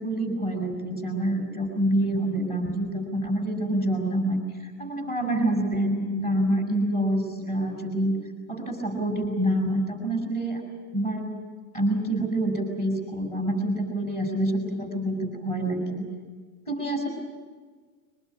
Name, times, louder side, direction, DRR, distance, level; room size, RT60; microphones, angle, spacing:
voice 1, 0.0-8.2 8.5-10.6 10.9-11.3 11.7-16.1 16.7-17.1, right 1 dB, 20° left, 4 dB, 7.1 m, -27 dB
24.0 x 21.5 x 9.8 m, 1.5 s
hypercardioid pair, 145°, 50 cm